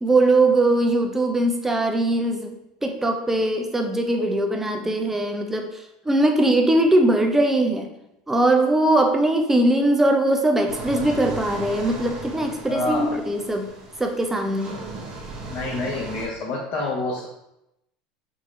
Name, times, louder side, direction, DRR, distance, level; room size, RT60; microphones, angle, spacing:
voice 1, 0.0-2.6 2.8-7.9 8.3-13.7 14.0-14.8, right 1 dB, 10° right, 4 dB, 0.7 m, -21 dB
sound 1, 10.7-16.3, right 2 dB, 35° right, 1.2 m, -36 dB
voice 2, 12.7-13.1 15.5-17.3, left 2 dB, 50° left, -5 dB, 1.0 m, -27 dB
3.8 x 2.9 x 3.8 m, 0.85 s
hypercardioid pair, 95°, 3 cm